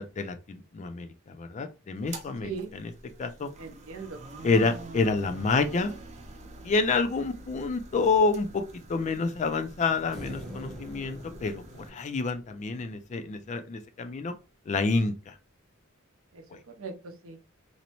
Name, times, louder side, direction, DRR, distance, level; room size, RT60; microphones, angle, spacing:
voice 1, 0.0-2.5 3.2-3.5 4.4-5.9 6.6-8.6 8.9-14.3 14.7-15.3, left 4 dB, 35° left, 0.3 m, -28 dB
sound 1, 2.0-11.9, right 2 dB, 35° right, 0.5 m, -46 dB
voice 2, 2.4-2.7 3.6-4.2 16.3-17.4, right 5 dB, 75° right, 0.6 m, -39 dB
sound 2, 10.1-13.5, equal, ahead, 0.7 m, -44 dB
2.6 x 2.1 x 2.9 m
head